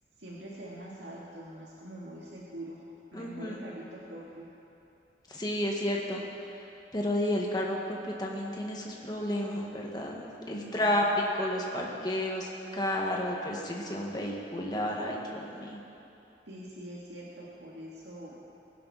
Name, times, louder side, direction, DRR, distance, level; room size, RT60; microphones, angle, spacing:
voice 1, 0.2-2.8 3.1-4.5 10.5-11.2 16.5-18.4, right 1 dB, 80° right, -5 dB, 2.0 m, -44 dB
voice 2, 3.1-3.6 5.3-6.2 6.9-11.1 11.3-15.8, left 1 dB, 25° left, -1 dB, 1.8 m, -32 dB
21.0 x 11.0 x 4.2 m, 2.9 s
head